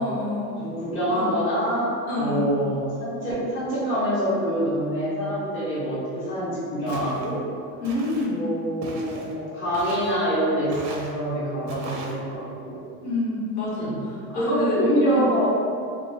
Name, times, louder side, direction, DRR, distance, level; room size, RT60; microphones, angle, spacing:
voice 1, 0.0-0.6 1.0-1.3 2.1-2.4 7.8-8.4 13.0-14.8 15.1-15.2, left 1 dB, 55° left, -7 dB, 1.0 m, -28 dB
voice 2, 0.6-7.4 8.2-12.8 13.7-14.0 14.3-15.5, equal, 25° left, -10 dB, 0.9 m, -25 dB
Walk footsteps, 6.9-7.3 7.8-8.3 8.8-9.3 9.7-10.2 10.7-11.1 11.7-12.1, right 2 dB, 40° right, 0.5 m, -37 dB
2.3 x 2.2 x 3.2 m, 2.4 s
supercardioid pair, 125°, 45 cm